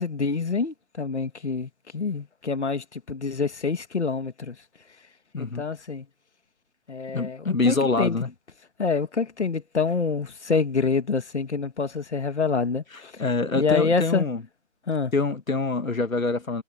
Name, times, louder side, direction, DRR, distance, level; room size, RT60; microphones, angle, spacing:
voice 1, 0.0-4.6 5.4-6.1 6.9-8.2 8.8-13.1 13.6-14.3 14.9-15.1, left 4 dB, 55° left, 2.3 m, -26 dB
voice 2, 7.1-8.3 13.2-14.4 15.1-16.6, left 3 dB, 80° left, 2.2 m, -25 dB
figure-of-eight pair, 165°, 40 cm